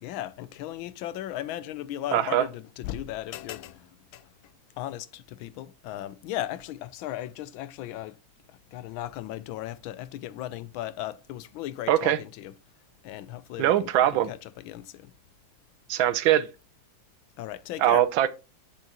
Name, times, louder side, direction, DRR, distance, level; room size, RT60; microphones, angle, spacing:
voice 1, 0.0-4.3 4.8-8.2 8.7-12.5 13.0-13.9 14.3-15.1 17.4-18.0, left 13 dB, 90° left, 1.4 m, -36 dB
voice 2, 2.1-2.4 11.9-12.2 13.6-14.3 15.9-16.5 17.8-18.3, right 12 dB, 80° right, 1.5 m, -22 dB
8.3 x 6.6 x 2.9 m
omnidirectional pair, 2.1 m